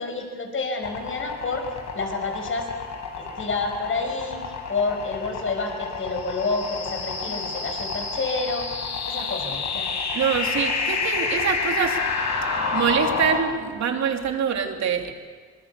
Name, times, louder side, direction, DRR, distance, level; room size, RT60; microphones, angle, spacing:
voice 1, 0.0-1.7 1.9-2.7 3.2-4.4 4.7-8.7 9.1-9.9, left 3 dB, 45° left, 4 dB, 5.8 m, -29 dB
sound 1, 0.8-13.4, left 4 dB, 70° left, 4.6 m, -29 dB
voice 2, 10.1-12.0 12.7-15.1, right 7 dB, 65° right, 3 dB, 3.2 m, -24 dB
25.5 x 21.5 x 7.0 m, 1.5 s
cardioid pair, 90°, 30 cm